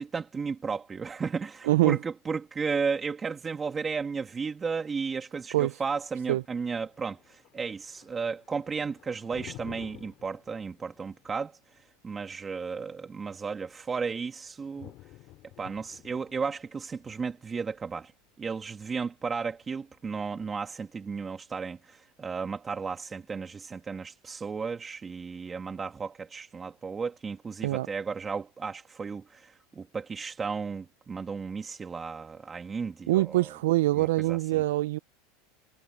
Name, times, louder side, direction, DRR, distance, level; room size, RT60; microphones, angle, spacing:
voice 1, 0.0-14.9 15.6-18.1 18.4-33.5 33.9-34.6, right 5 dB, 20° right, 2.1 m, -34 dB
voice 2, 1.6-2.0 5.5-5.8 6.3-6.4 27.6-27.9 33.1-35.0, right 17 dB, 80° right, 0.4 m, -24 dB
Thunder, 6.0-20.0, left 17 dB, 50° left, 3.6 m, -53 dB
supercardioid pair, 120°, 0 cm